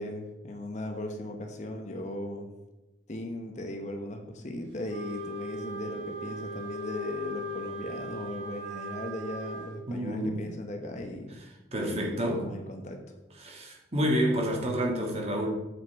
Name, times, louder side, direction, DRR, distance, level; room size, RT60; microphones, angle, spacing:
voice 1, 0.0-2.5 3.1-11.4 11.7-13.0, left 1 dB, 35° left, 4 dB, 0.9 m, -38 dB
Wind instrument woodwind instrument, 4.9-9.7, equal, 65° right, 1.6 m, -38 dB
voice 2, 9.9-10.4 11.7-12.5 13.4-15.5, equal, 30° right, 0 dB, 1.6 m, -29 dB
8.2 x 5.5 x 4.5 m, 1.0 s
head